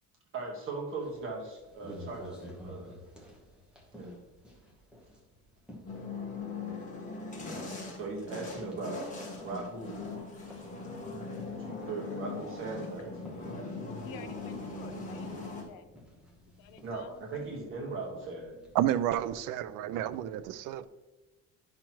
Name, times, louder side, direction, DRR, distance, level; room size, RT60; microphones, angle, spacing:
voice 1, 0.3-3.0 3.9-4.2 8.0-9.1 9.4-10.0 11.6-13.1 16.8-18.6, right 3 dB, 40° right, 1.5 m, -39 dB
sound 1, 1.0-19.2, equal, 5° right, 1.0 m, -53 dB
sound 2, 5.9-15.6, left 3 dB, 25° left, 1.4 m, -40 dB
voice 2, 7.1-7.7 14.0-15.9 16.6-17.7, left 8 dB, 85° left, 0.8 m, -50 dB
voice 3, 18.7-20.9, right 12 dB, 70° right, 0.5 m, -30 dB
10.0 x 5.9 x 3.0 m
cardioid pair, 175°, 32 cm